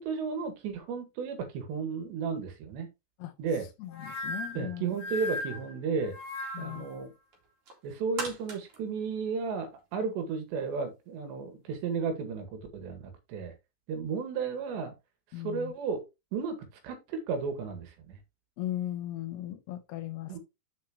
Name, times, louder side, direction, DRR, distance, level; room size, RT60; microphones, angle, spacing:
voice 1, 0.0-2.9 3.4-3.7 4.6-6.1 6.6-7.1 7.8-13.5 13.9-14.9 15.4-16.0 16.3-16.6 16.8-18.2 20.3-20.4, right 5 dB, 75° right, 3.9 m, -33 dB
voice 2, 3.8-4.8 6.5-6.9 15.3-15.7 18.6-20.4, left 13 dB, 75° left, 2.8 m, -37 dB
sound 1, 3.9-7.0, left 2 dB, 50° left, 2.4 m, -38 dB
sound 2, 7.3-10.1 10.5-10.6, right 3 dB, 45° right, 3.6 m, -42 dB
7.7 x 7.3 x 3.1 m
omnidirectional pair, 5.1 m